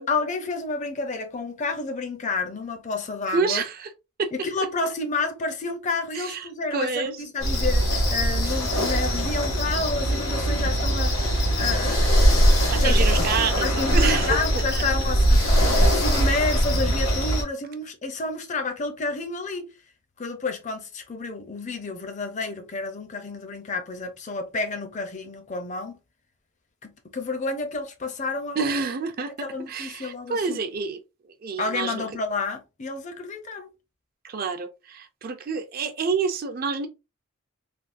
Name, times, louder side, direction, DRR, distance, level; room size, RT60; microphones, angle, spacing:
voice 1, 0.0-3.6 4.3-11.2 11.6-12.2 12.7-13.2 13.6-15.4 15.9-19.7 20.2-26.0 26.8-28.8 29.4-30.6 31.6-33.7, left 3 dB, 35° left, 0.5 m, -30 dB
voice 2, 3.3-3.9 4.2-4.3 6.1-7.2 12.7-14.4 14.7-14.8 28.6-31.0 31.4-32.0 34.2-36.9, right 5 dB, 45° right, 0.4 m, -28 dB
sound 1, 7.4-17.4, equal, 85° left, 1.6 m, -21 dB
3.4 x 2.2 x 2.5 m
head